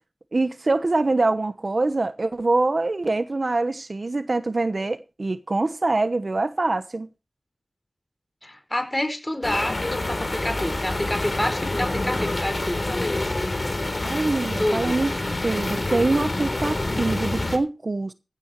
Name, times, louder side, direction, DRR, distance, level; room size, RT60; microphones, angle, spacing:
voice 1, 0.3-7.1 14.0-15.2 15.4-18.1, right 2 dB, 45° right, 1.0 m, -24 dB
voice 2, 8.4-13.2 14.6-15.0, left 1 dB, 15° left, 4.8 m, -28 dB
sound 1, 9.4-17.6, left 2 dB, 35° left, 3.4 m, -27 dB
15.5 x 12.5 x 3.1 m
wide cardioid pair, 75°, 0 cm